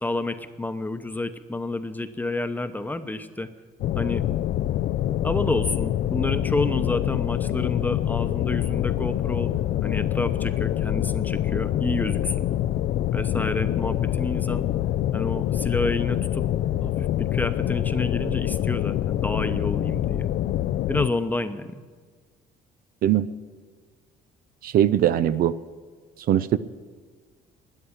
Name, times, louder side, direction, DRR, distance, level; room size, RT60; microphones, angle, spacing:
voice 1, 0.0-3.5 4.0-4.2 5.2-12.5 13.1-14.7 15.1-16.5 16.8-20.3 20.9-21.8, left 2 dB, 10° left, 9 dB, 0.9 m, -29 dB
sound 1, 3.8-21.1, left 12 dB, 60° left, 0.4 m, -25 dB
voice 2, 24.6-25.6 26.3-26.6, right 11 dB, 60° right, 14 dB, 0.5 m, -20 dB
13.0 x 10.0 x 8.7 m, 1.5 s
cardioid pair, 110°, 17 cm